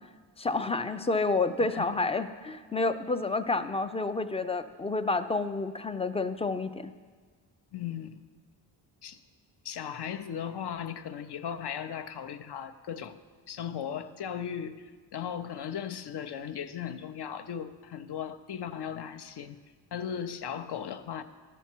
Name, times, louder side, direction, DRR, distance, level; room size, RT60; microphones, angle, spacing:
voice 1, 0.4-6.9, left 3 dB, 15° left, 11 dB, 0.3 m, -29 dB
voice 2, 7.7-8.2 9.0-9.2 9.6-13.2 13.5-19.6 19.9-21.2, left 8 dB, 60° left, 9 dB, 0.6 m, -37 dB
12.0 x 7.0 x 4.5 m, 1.5 s
cardioid pair, 95°, 45 cm